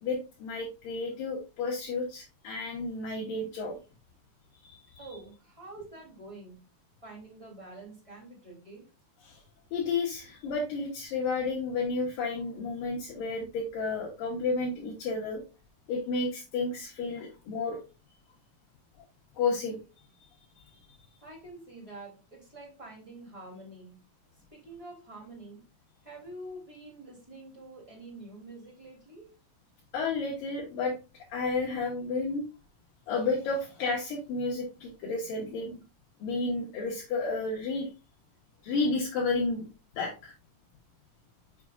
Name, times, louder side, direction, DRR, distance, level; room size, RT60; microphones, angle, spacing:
voice 1, 0.0-3.8 4.6-5.1 9.2-9.4 9.7-15.4 15.9-17.8 19.4-19.8 29.9-30.9 31.3-32.5 33.1-35.8 36.2-37.9 38.6-39.7 40.0-40.3, left 3 dB, 75° left, -3 dB, 2.0 m, -31 dB
voice 2, 5.0-6.6 7.0-8.8 21.2-24.0 24.5-25.6 26.0-29.3, right 2 dB, 10° right, -3 dB, 1.9 m, -47 dB
7.1 x 6.6 x 2.5 m, 0.30 s
omnidirectional pair, 5.7 m